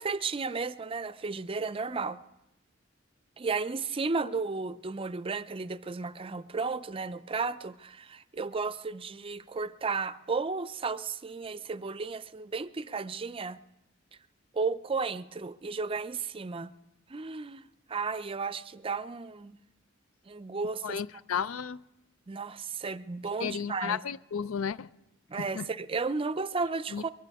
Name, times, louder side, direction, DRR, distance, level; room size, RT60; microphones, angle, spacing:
voice 1, 0.0-2.2 3.4-13.6 14.5-16.7 17.1-17.6 17.9-19.6 20.3-21.0 22.3-24.0 25.3-27.1, right 4 dB, 25° right, 0.5 m, -33 dB
voice 2, 20.8-21.8 23.4-24.9 25.4-25.7 26.9-27.0, left 7 dB, 90° left, 0.4 m, -33 dB
23.5 x 15.0 x 3.5 m
head